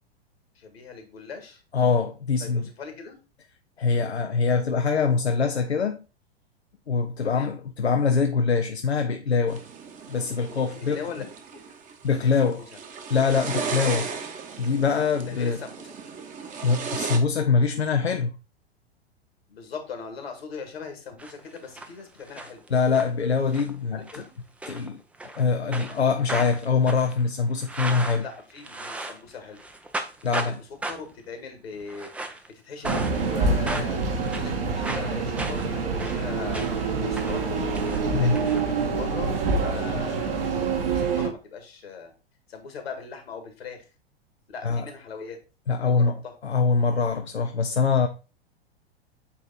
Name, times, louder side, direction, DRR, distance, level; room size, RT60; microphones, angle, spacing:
voice 1, 0.5-1.6 2.4-3.2 7.2-7.6 10.7-11.2 11.5-11.6 12.1-12.8 15.3-15.9 19.5-22.6 23.9-24.3 28.1-29.6 30.3-32.1 32.6-34.0 34.3-36.7 37.0-37.4 38.1-40.5 40.9-42.1 42.5-43.8 44.5-45.4 45.8-46.3, left 5 dB, 70° left, 1.8 m, -40 dB
voice 2, 1.7-2.7 3.8-6.0 6.9-9.6 10.1-11.1 12.0-12.6 13.1-14.1 14.6-15.6 16.6-18.3 22.7-24.0 24.7-28.2 30.2-30.5 38.1-38.4 44.6-44.9 45.7-46.1 46.4-48.1, left 5 dB, 85° left, 0.6 m, -23 dB
sound 1, 9.5-17.2, right 5 dB, 25° right, 1.0 m, -36 dB
sound 2, 21.2-21.9 22.2-23.1 23.5-23.8 24.1-24.3 24.6-25.4 25.7-29.3 29.6-30.5 30.8-31.2 31.8-32.5 32.8-33.4 33.7-36.9 37.2-38.6, right 2 dB, 5° right, 0.4 m, -35 dB
sound 3, 32.8-41.3, right 4 dB, 65° right, 1.4 m, -26 dB
8.3 x 2.9 x 4.0 m
figure-of-eight pair, 95°, 32 cm